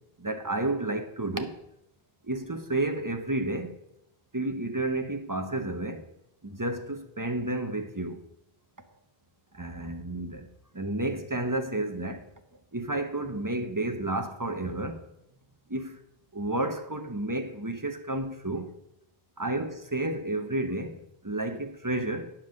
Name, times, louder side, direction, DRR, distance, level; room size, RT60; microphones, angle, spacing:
voice 1, 0.2-1.6 2.2-3.8 4.3-6.1 6.4-8.2 9.5-10.5 10.7-12.3 12.7-15.0 15.7-16.0 16.3-18.7 19.4-22.3, right 2 dB, 20° right, 0.8 m, -31 dB
10.0 x 5.6 x 6.4 m
omnidirectional pair, 1.1 m